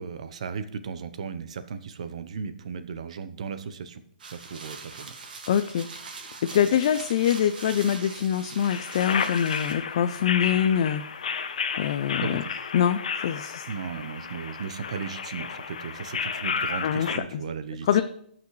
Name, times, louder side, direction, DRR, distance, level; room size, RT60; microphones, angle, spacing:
voice 1, 0.0-4.0 4.3-5.2 12.2-12.7 13.7-18.0, right 6 dB, 45° right, 11 dB, 0.8 m, -36 dB
sound 1, 4.2-9.7, right 4 dB, 70° right, 2.0 m, -42 dB
voice 2, 5.5-5.9 6.4-11.0 11.3-11.4 11.8-12.4 12.7-13.6 16.8-17.4 17.9-18.0, left 9 dB, 30° left, 10 dB, 0.3 m, -24 dB
sound 2, 8.6-17.2, left 6 dB, 55° left, 0.9 m, -32 dB
17.5 x 5.9 x 3.2 m, 0.69 s
hypercardioid pair, 180°, 5 cm